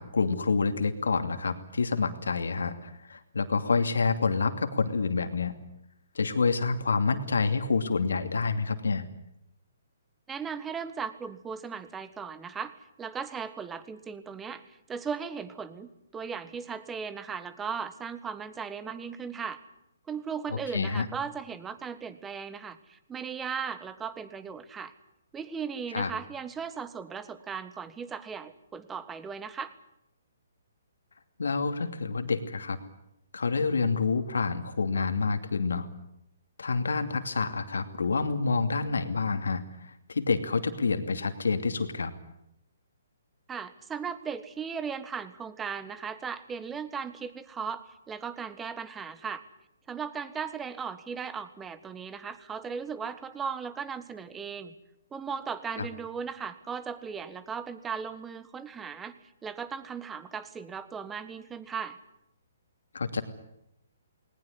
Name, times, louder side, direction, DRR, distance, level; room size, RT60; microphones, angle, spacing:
voice 1, 0.0-5.5 6.1-9.0 20.5-21.1 25.9-26.1 31.4-32.8 33.3-35.9 36.6-42.1 55.8-55.9 62.9-63.2, left 4 dB, 85° left, 8 dB, 2.6 m, -28 dB
voice 2, 10.3-19.6 20.1-24.9 25.3-29.7 43.5-49.4 49.9-54.7 55.1-59.2 59.4-62.0, right 6 dB, 10° right, 13 dB, 1.5 m, -37 dB
20.0 x 19.5 x 9.9 m, 0.82 s
hypercardioid pair, 145°, 0 cm